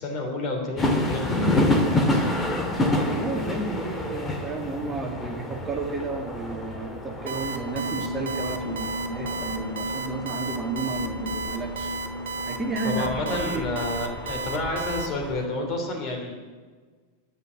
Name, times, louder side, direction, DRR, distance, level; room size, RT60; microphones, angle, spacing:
voice 1, 0.0-2.2 12.8-16.3, left 2 dB, 35° left, 1 dB, 3.3 m, -30 dB
sound 1, 0.8-15.5, left 1 dB, 15° left, 1.9 m, -29 dB
voice 2, 3.0-11.9 12.5-13.7, right 2 dB, 15° right, 0 dB, 1.9 m, -32 dB
Alarm, 7.3-15.1, right 4 dB, 60° right, 1.0 m, -33 dB
sound 2, 7.7-15.2, equal, 90° right, 1.0 m, -37 dB
10.5 x 8.5 x 9.6 m, 1.4 s
figure-of-eight pair, 90°, 0 cm